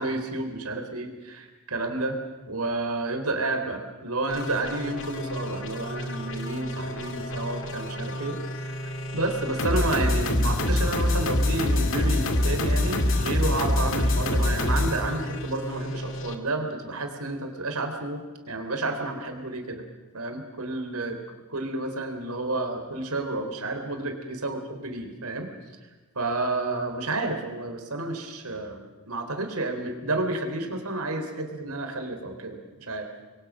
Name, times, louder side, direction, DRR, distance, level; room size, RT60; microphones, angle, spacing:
voice 1, 0.0-2.2 2.5-8.4 8.6-19.8 20.1-21.2 21.5-25.5 26.2-33.1, right 2 dB, 80° right, 5 dB, 3.6 m, -30 dB
sound 1, 4.3-16.3, left 1 dB, 60° left, 2.2 m, -27 dB
27.5 x 22.0 x 6.3 m, 1.3 s
head